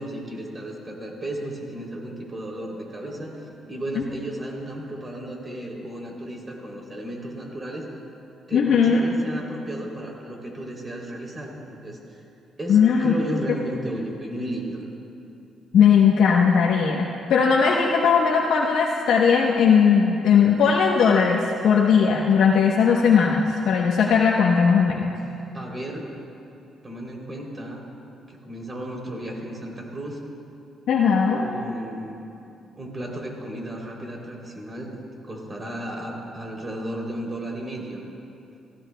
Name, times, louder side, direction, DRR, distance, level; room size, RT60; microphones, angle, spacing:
voice 1, 0.0-7.9 8.5-12.2 12.6-14.8 25.5-26.1 26.8-27.9 28.3-30.2 31.3-32.2 32.8-38.0, right 1 dB, 25° right, -1 dB, 3.0 m, -34 dB
voice 2, 8.5-9.1 12.7-13.2 15.7-25.1 30.9-31.4, left 6 dB, 75° left, -2 dB, 0.9 m, -18 dB
18.0 x 16.0 x 2.2 m, 2.6 s
cardioid pair, 90°, 0 cm